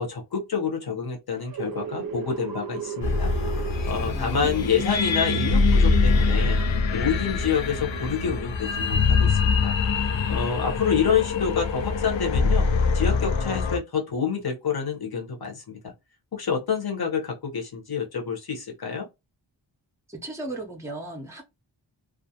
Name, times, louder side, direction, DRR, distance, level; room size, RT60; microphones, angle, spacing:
voice 1, 0.0-3.3 3.8-6.6 6.9-9.7 10.3-12.7 12.9-15.8 16.3-19.1, left 6 dB, 55° left, 0.9 m, -28 dB
sound 1, 1.3-8.6, right 7 dB, 55° right, 0.5 m, -37 dB
sound 2, 3.0-13.8, left 4 dB, 90° left, 0.5 m, -23 dB
voice 2, 4.0-4.5 20.1-21.4, right 2 dB, 5° right, 0.5 m, -36 dB
2.4 x 2.1 x 2.7 m
wide cardioid pair, 85°, 44 cm